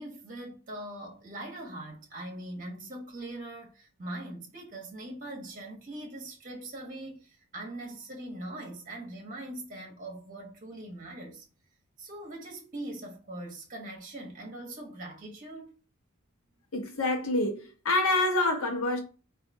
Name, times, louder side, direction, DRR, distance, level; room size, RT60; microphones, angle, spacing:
voice 1, 0.0-11.4 12.0-15.7, right 1 dB, 35° right, 0.9 m, -41 dB
voice 2, 16.7-19.0, left 2 dB, 65° left, 0.9 m, -27 dB
3.6 x 2.5 x 2.6 m
head